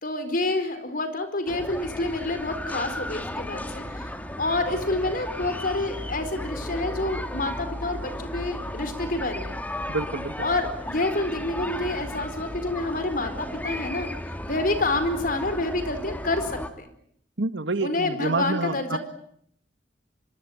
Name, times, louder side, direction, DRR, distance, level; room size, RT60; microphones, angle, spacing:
voice 1, 0.0-4.1 4.4-9.6 10.4-14.1 14.5-16.9 17.8-19.0, left 2 dB, 50° left, 10 dB, 4.5 m, -28 dB
sound 1, 1.5-16.7, left 1 dB, 10° left, 2.1 m, -35 dB
voice 2, 9.9-10.5 17.4-19.0, right 3 dB, 80° right, 11 dB, 1.8 m, -28 dB
25.5 x 23.0 x 9.3 m, 0.68 s
head